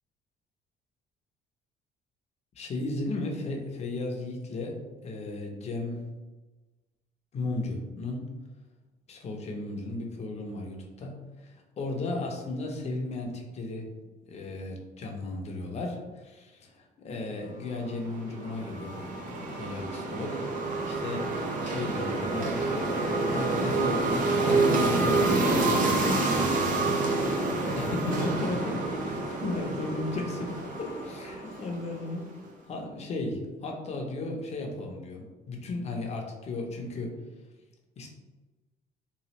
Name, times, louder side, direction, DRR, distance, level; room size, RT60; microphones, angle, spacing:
voice 1, 2.5-6.1 7.3-8.3 9.1-13.9 14.3-20.4 20.9-21.3 21.6-26.9 27.7-30.5 30.8-32.3 32.7-37.2 38.0-38.1, left 2 dB, 40° left, 1 dB, 0.7 m, -35 dB
sound 1, 17.8-32.2, right 2 dB, 50° right, 0.6 m, -28 dB
3.1 x 2.3 x 2.9 m, 1.2 s
cardioid pair, 110°, 17 cm